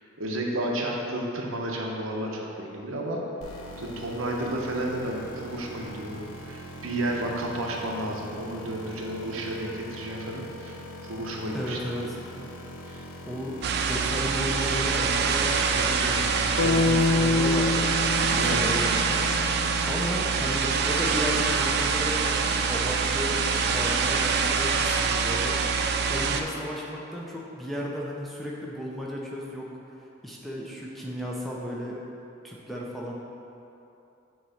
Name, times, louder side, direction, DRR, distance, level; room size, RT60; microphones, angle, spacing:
voice 1, 0.2-3.2 3.8-11.8 12.4-12.5 12.8-13.0 14.9-15.0 18.3-18.8, right 1 dB, 80° right, -1 dB, 0.9 m, -32 dB
sound 1, 3.4-16.9, left 1 dB, 90° left, 0.8 m, -42 dB
voice 2, 11.5-12.2 13.3-17.9 18.3-19.6 19.9-29.7 30.2-32.0 32.4-33.1, equal, ahead, -4 dB, 0.6 m, -34 dB
sound 2, 13.6-26.4, right 5 dB, 50° right, 0.4 m, -25 dB
sound 3, 16.6-20.6, left 3 dB, 70° left, 0.4 m, -27 dB
7.8 x 3.1 x 5.0 m, 2.9 s
head